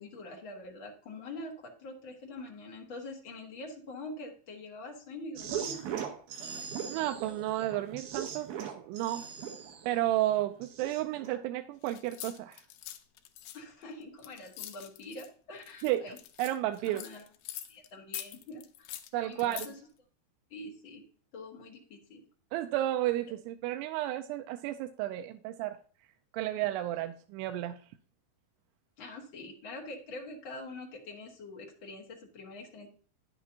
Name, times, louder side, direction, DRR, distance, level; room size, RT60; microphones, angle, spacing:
voice 1, 0.0-5.9 13.5-16.2 16.8-17.2 17.7-19.8 20.5-21.0 21.3-22.2 29.0-32.9, left 2 dB, 70° left, 0 dB, 1.1 m, -45 dB
sound 1, 5.4-11.4, right 8 dB, 70° right, 2.9 m, -39 dB
voice 2, 6.9-9.3 9.9-12.6 15.8-16.1 16.4-17.1 19.1-19.7 22.5-25.8 26.3-27.8, right 14 dB, 85° right, 7 dB, 2.6 m, -32 dB
sound 2, 11.8-15.3 15.6-17.9 18.1-19.7, left 12 dB, 90° left, 2.7 m, -44 dB
10.0 x 8.5 x 2.8 m, 0.42 s
omnidirectional pair, 4.7 m